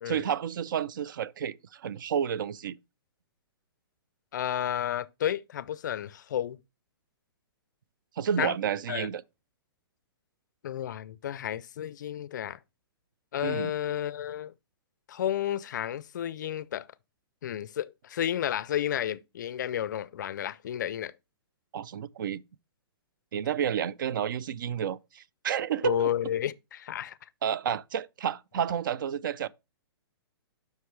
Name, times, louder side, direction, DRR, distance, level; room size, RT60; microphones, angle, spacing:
voice 1, 0.1-2.8 8.2-9.2 13.4-13.7 21.7-22.4 23.3-26.1 27.4-29.5, right 8 dB, 55° right, 0.4 m, -30 dB
voice 2, 4.3-6.6 8.4-8.6 8.9-9.1 10.6-12.6 13.3-14.5 15.1-16.8 17.4-21.1 25.8-27.2, left 10 dB, 50° left, 0.4 m, -31 dB
7.8 x 5.6 x 3.1 m
hypercardioid pair, 170°, 13 cm